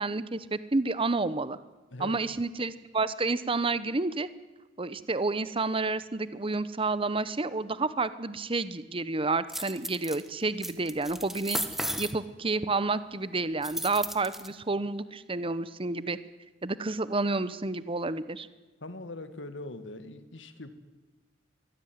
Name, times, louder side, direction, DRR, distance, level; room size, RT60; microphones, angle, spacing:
voice 1, 0.0-1.6 2.0-4.3 4.8-11.6 12.0-16.2 16.6-18.5, right 3 dB, 30° right, 15 dB, 0.9 m, -30 dB
voice 2, 1.9-2.2 18.8-20.7, left 2 dB, 75° left, 11 dB, 2.0 m, -41 dB
sound 1, 9.5-10.2 10.6-12.1 13.6-14.5, right 1 dB, ahead, 1.4 m, -34 dB
23.0 x 16.5 x 9.5 m, 1.2 s
head